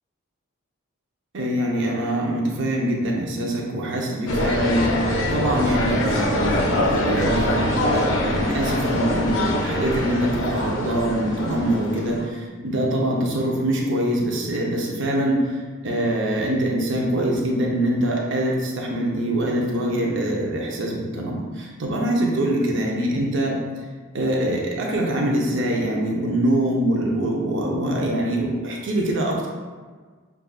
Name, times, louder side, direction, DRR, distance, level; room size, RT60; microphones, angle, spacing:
voice 1, 1.3-15.6 15.8-23.6 24.1-29.5, right 1 dB, 55° right, -1 dB, 0.6 m, -24 dB
sound 1, 4.3-12.3, left 1 dB, 60° left, 0.5 m, -24 dB
6.5 x 2.3 x 2.3 m, 1.5 s
head